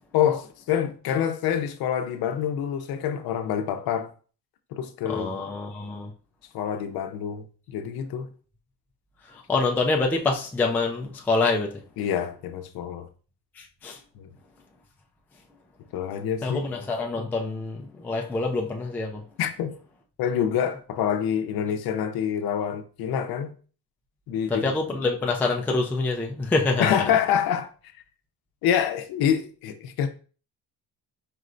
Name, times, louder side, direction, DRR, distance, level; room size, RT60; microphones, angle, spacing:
voice 1, 0.1-4.1 4.7-5.4 6.5-7.4 7.7-8.3 12.0-13.1 14.1-14.3 15.9-16.6 19.4-19.7 20.2-23.5 24.3-24.7 26.8-27.7 28.6-30.1, left 9 dB, 60° left, 0.7 m, -26 dB
voice 2, 5.1-6.1 9.3-11.7 13.6-14.0 16.4-19.2 24.5-26.9, left 3 dB, 5° left, 0.3 m, -26 dB
4.7 x 3.1 x 2.6 m
cardioid pair, 145°, 41 cm